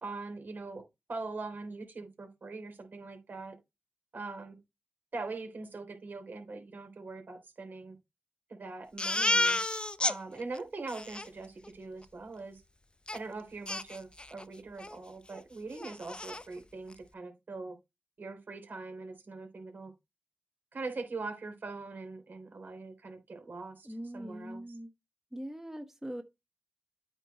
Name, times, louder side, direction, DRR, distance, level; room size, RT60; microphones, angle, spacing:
voice 1, 0.0-0.8 1.1-3.6 4.1-4.6 5.1-8.0 8.6-9.6 10.1-12.6 13.1-17.8 18.2-19.9 20.7-23.9 24.1-24.6, right 3 dB, 65° right, 3.5 m, -42 dB
Crying sobbing, 9.0-10.2 10.6-10.7 10.9-11.3 13.1-13.2 13.7-14.4 14.8-15.0 15.3-15.4 15.7-16.4, left 2 dB, 30° left, 0.8 m, -31 dB
voice 2, 23.8-24.9 25.3-26.2, right 1 dB, 10° right, 1.4 m, -41 dB
9.0 x 4.6 x 4.1 m
cardioid pair, 45°, 4 cm